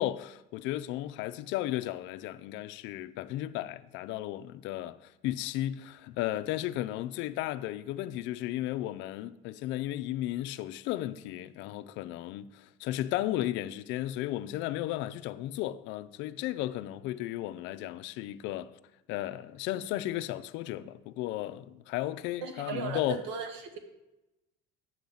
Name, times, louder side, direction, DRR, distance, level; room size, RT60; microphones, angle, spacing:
voice 1, 0.0-18.7 19.1-23.2, left 14 dB, 70° left, 0.5 m, -34 dB
voice 2, 22.4-23.8, right 5 dB, 70° right, 1.4 m, -37 dB
9.1 x 3.9 x 7.1 m
cardioid pair, 125°, 20 cm